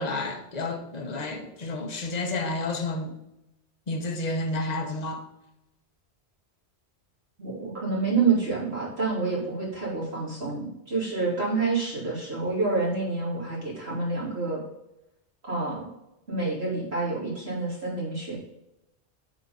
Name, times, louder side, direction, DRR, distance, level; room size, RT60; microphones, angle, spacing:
voice 1, 0.0-3.1 3.9-5.2, left 2 dB, 40° left, 4 dB, 1.1 m, -30 dB
voice 2, 7.4-14.6 15.4-15.8 16.3-18.4, right 4 dB, 65° right, -6 dB, 3.5 m, -28 dB
8.7 x 4.4 x 5.4 m, 0.89 s
omnidirectional pair, 1.2 m